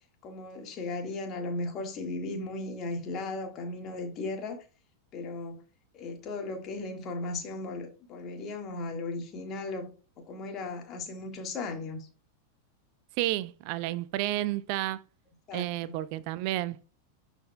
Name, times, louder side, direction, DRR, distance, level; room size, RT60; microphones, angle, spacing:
voice 1, 0.2-4.6 5.1-5.6 5.9-9.9 10.2-12.1 15.5-15.9, left 2 dB, 35° left, 1.6 m, -36 dB
voice 2, 13.2-15.0 15.5-16.9, right 15 dB, 45° right, 0.3 m, -31 dB
12.0 x 4.1 x 2.2 m
figure-of-eight pair, 90°, 0 cm